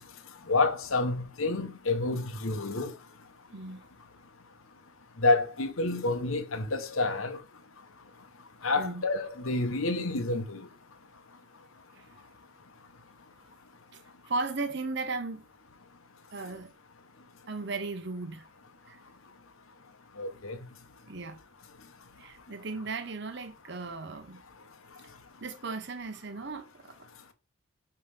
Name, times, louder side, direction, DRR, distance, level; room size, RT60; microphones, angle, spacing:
voice 1, 0.5-2.9 5.2-7.4 8.6-10.6 20.2-20.6, left 3 dB, 75° left, 1.1 m, -28 dB
voice 2, 14.3-15.5 16.3-16.7 17.5-18.4 18.9-19.0 21.1-21.4 22.2-24.4 25.4-26.9, right 3 dB, 55° right, 0.8 m, -36 dB
5.7 x 5.5 x 3.4 m
head